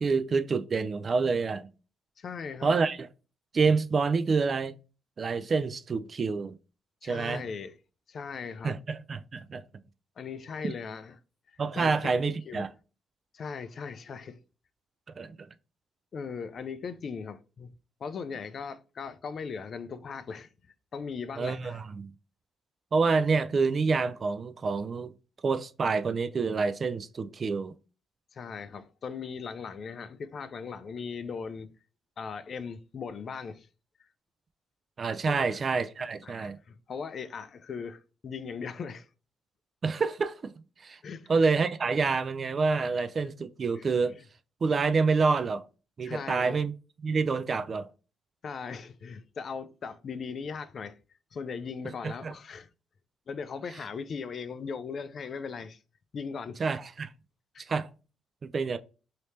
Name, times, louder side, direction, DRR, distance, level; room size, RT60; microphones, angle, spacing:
voice 1, 0.0-1.7 2.6-3.1 3.5-4.7 5.2-6.5 7.0-7.4 8.6-9.6 10.6-10.7 11.6-12.7 15.2-15.5 21.4-22.1 22.9-25.1 25.4-27.7 35.0-36.6 39.8-40.5 40.8-41.0 41.3-44.2 44.6-45.6 46.0-46.7 47.0-47.9 52.0-52.3 56.6-57.1 57.7-57.9 58.4-58.8, right 4 dB, 40° right, 0.3 m, -27 dB
voice 2, 2.2-2.7 7.0-7.8 8.1-8.8 10.2-11.1 11.5-12.7 13.3-14.4 16.1-17.7 18.0-20.5 20.9-21.8 27.2-27.3 28.3-31.7 32.2-33.7 34.0-34.1 35.3-35.5 36.2-39.1 41.0-41.3 43.8-43.9 46.0-46.6 48.4-51.0 51.3-52.7 53.3-55.8 56.1-56.6 57.5-57.6, left 5 dB, 50° left, 0.4 m, -38 dB
3.2 x 2.8 x 3.1 m
cardioid pair, 90°, 0 cm